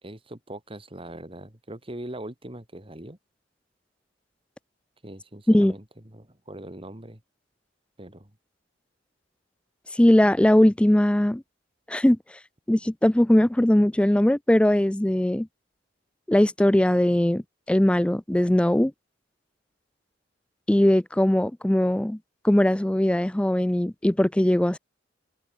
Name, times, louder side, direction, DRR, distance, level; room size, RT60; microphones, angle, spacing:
voice 1, 0.0-3.2 5.0-7.2 8.0-8.3, right 1 dB, 30° right, 3.0 m, -41 dB
voice 2, 9.9-11.4 11.9-12.2 12.7-15.5 16.3-17.4 17.7-18.9 20.7-22.2 22.4-24.8, left 1 dB, 5° left, 0.4 m, -20 dB
head